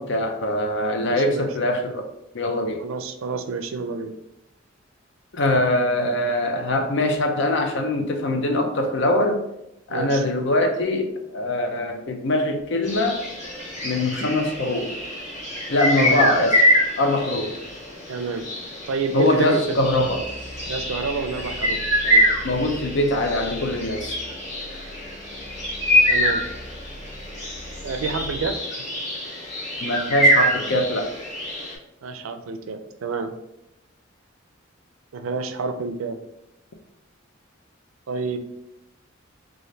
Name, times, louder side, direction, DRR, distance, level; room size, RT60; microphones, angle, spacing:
voice 1, 0.0-2.1 2.3-2.8 5.3-9.4 9.9-13.2 13.8-14.9 15.7-16.6 17.0-17.6 19.1-20.3 22.4-24.2 29.8-31.1, left 1 dB, 60° left, 0.5 m, -23 dB
voice 2, 1.0-1.5 2.8-4.1 9.9-10.2 16.0-16.3 18.1-18.4 18.9-19.6 20.7-22.3 26.1-26.4 27.8-28.6 32.0-33.3 35.1-36.2 38.1-38.4, right 4 dB, 85° right, 0.4 m, -29 dB
sound 1, 12.8-31.7, equal, 35° left, 1.1 m, -25 dB
sound 2, 19.8-28.5, equal, ahead, 0.4 m, -41 dB
3.9 x 2.4 x 3.1 m
head